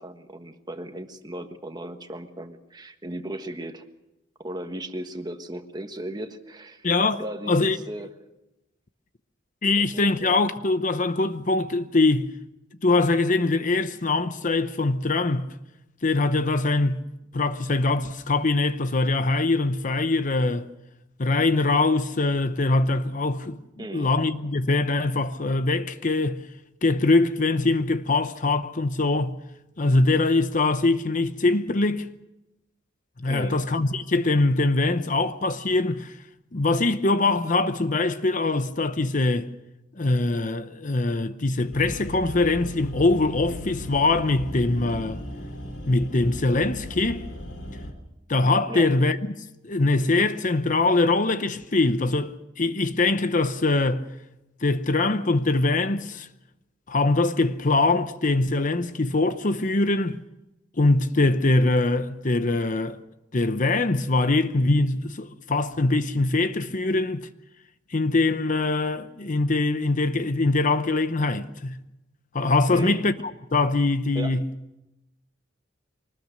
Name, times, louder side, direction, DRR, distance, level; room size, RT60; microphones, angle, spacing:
voice 1, 0.0-3.8 4.4-6.9 7.2-8.1 9.8-10.4 23.8-24.1 33.2-33.6 48.7-48.9 72.7-73.0 74.1-74.4, right 1 dB, 20° right, 1.4 m, -36 dB
voice 2, 6.8-7.2 7.5-7.8 9.6-12.3 12.8-15.5 16.0-17.0 17.3-20.7 21.2-26.4 26.8-29.4 29.8-32.1 33.2-36.2 36.5-39.5 40.0-45.2 45.9-47.2 48.3-49.2 49.6-54.1 54.6-56.3 56.9-60.2 60.8-63.0 63.3-67.3 67.9-71.8 72.3-73.1 73.5-74.4, left 2 dB, 40° left, 0.8 m, -23 dB
sound 1, 41.7-47.9, left 1 dB, 80° left, 3.5 m, -37 dB
24.5 x 19.5 x 6.6 m
head